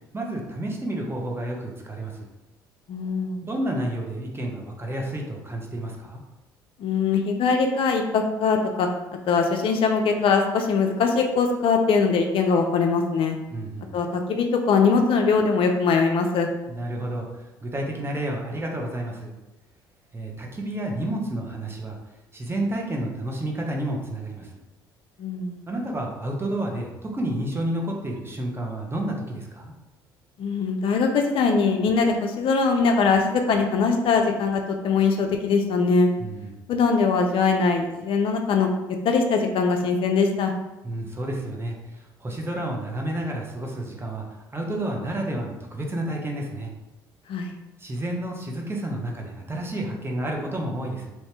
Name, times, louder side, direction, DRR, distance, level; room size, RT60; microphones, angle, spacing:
voice 1, 0.1-2.3 3.4-6.2 13.5-13.9 16.7-17.3 17.6-19.3 20.1-22.0 22.3-24.5 25.7-29.7 36.2-36.5 40.8-44.2 44.5-46.7 47.8-51.1, right 1 dB, 20° right, 0 dB, 0.8 m, -30 dB
voice 2, 2.9-3.4 6.8-8.9 9.3-13.4 13.9-16.5 25.2-25.6 30.4-36.1 36.7-38.7 39.0-40.5 47.3-47.5, left 4 dB, 50° left, 4 dB, 0.4 m, -22 dB
2.9 x 2.7 x 3.3 m, 0.99 s
hypercardioid pair, 60°, 11 cm